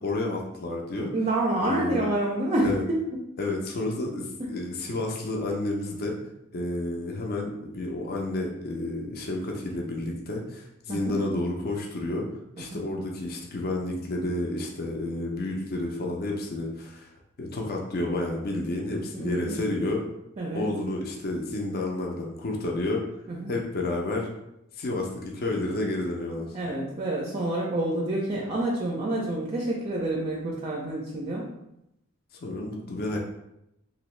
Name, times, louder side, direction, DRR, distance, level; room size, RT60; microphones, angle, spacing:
voice 1, 0.0-1.1 1.6-2.0 2.6-2.8 3.4-6.2 6.5-12.3 12.6-17.1 17.4-20.0 20.5-23.0 23.5-24.3 24.8-26.5 32.4-33.2, left 2 dB, 45° left, 0 dB, 0.5 m, -30 dB
voice 2, 1.1-3.2 10.9-11.2 12.6-12.8 19.1-19.8 20.4-20.7 23.3-23.5 26.5-31.5, right 1 dB, 30° right, -2 dB, 0.4 m, -28 dB
2.9 x 2.6 x 3.1 m, 0.84 s
head